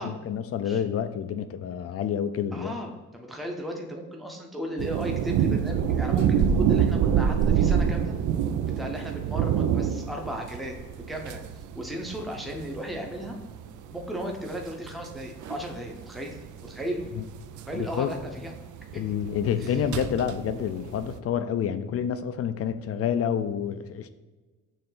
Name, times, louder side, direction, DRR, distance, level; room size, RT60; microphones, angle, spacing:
voice 1, 0.0-2.7 17.2-17.3 17.7-18.1 19.0-24.1, left 8 dB, 45° left, 11 dB, 0.5 m, -28 dB
voice 2, 2.5-8.2 8.8-10.7 11.1-11.4 11.7-13.4 13.9-17.2 17.7-18.5 19.6-19.8, equal, ahead, 1 dB, 0.7 m, -35 dB
sound 1, 4.8-21.2, right 8 dB, 70° right, 0.5 m, -27 dB
6.9 x 3.2 x 5.5 m, 1.3 s
cardioid pair, 170°, 32 cm